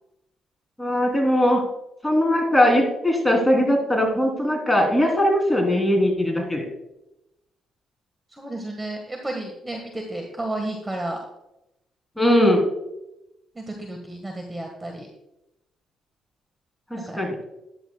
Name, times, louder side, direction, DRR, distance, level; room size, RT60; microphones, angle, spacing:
voice 1, 0.8-1.6 2.0-6.7 12.2-12.6 16.9-17.4, left 1 dB, 5° left, 1 dB, 3.2 m, -20 dB
voice 2, 8.3-11.2 13.5-15.1 17.1-17.2, right 1 dB, 15° right, 2 dB, 1.6 m, -32 dB
14.0 x 10.5 x 2.3 m, 0.88 s
cardioid pair, 90°, 0 cm